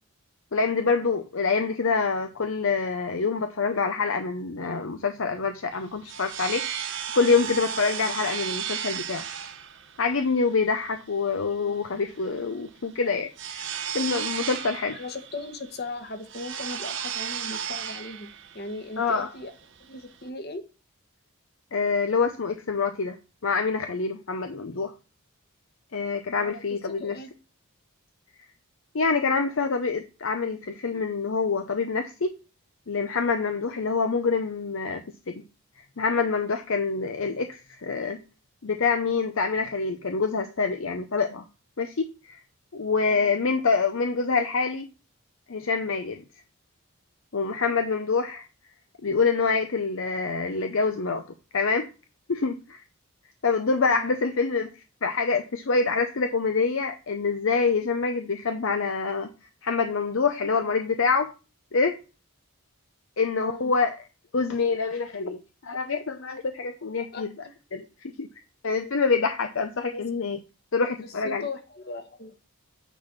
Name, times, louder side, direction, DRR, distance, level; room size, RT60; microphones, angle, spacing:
voice 1, 0.5-9.3 10.0-15.0 19.0-19.3 21.7-23.2 23.4-24.9 25.9-27.2 28.9-32.3 32.9-35.3 35.8-38.2 38.6-41.4 41.8-42.4 42.7-44.9 45.5-46.2 47.3-48.5 49.0-51.2 51.5-51.9 52.3-52.8 53.4-59.3 59.6-61.3 61.7-62.0 63.2-63.9 64.3-67.3 67.7-68.3 68.6-70.4 70.7-71.4, left 4 dB, 60° left, 0.7 m, -26 dB
sound 1, 5.7-20.3, right 8 dB, 55° right, 0.9 m, -35 dB
voice 2, 14.9-19.5 19.8-20.6 26.3-27.3 43.1-43.3 53.9-54.1 63.3-63.7 67.1-67.3 69.9-70.0 71.0-72.3, left 2 dB, 45° left, 1.3 m, -38 dB
9.1 x 4.2 x 6.1 m
head